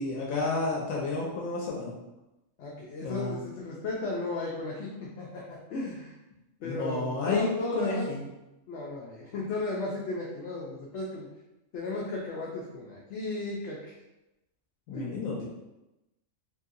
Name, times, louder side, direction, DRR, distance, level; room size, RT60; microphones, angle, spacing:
voice 1, 0.0-1.9 3.0-3.4 6.6-7.5 7.7-8.2 14.9-15.4, left 3 dB, 90° left, -3 dB, 1.0 m, -31 dB
voice 2, 2.6-6.1 6.6-8.1 8.7-11.3 11.7-13.9 15.1-15.2, left 2 dB, 65° left, -4 dB, 0.8 m, -35 dB
2.9 x 2.7 x 2.5 m, 0.97 s
omnidirectional pair, 1.4 m